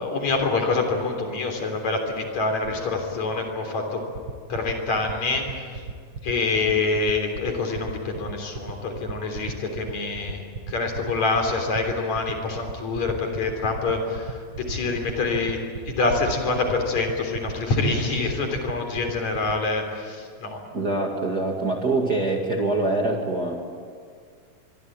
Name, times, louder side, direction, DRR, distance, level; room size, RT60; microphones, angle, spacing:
voice 1, 0.0-4.0 4.5-5.8 6.2-15.6 15.8-20.6, left 3 dB, 55° left, 4 dB, 4.6 m, -26 dB
sound 1, 4.1-19.5, right 6 dB, 65° right, 1.2 m, -34 dB
voice 2, 20.7-23.5, right 2 dB, 35° right, 0 dB, 2.2 m, -24 dB
25.0 x 23.5 x 8.7 m, 2.1 s
omnidirectional pair, 3.9 m